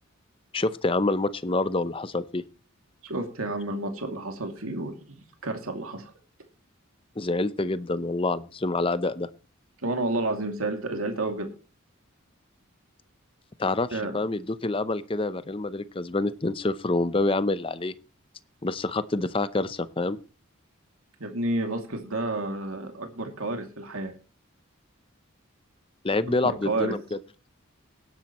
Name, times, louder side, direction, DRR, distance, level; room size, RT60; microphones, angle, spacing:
voice 1, 0.5-2.4 7.2-9.3 13.6-17.9 18.6-20.2 26.0-27.2, left 2 dB, 25° left, 14 dB, 0.6 m, -27 dB
voice 2, 3.0-6.1 9.8-11.5 13.9-14.2 21.2-24.1 26.4-26.9, right 2 dB, 90° right, 4 dB, 2.5 m, -30 dB
18.0 x 10.5 x 3.0 m, 0.35 s
head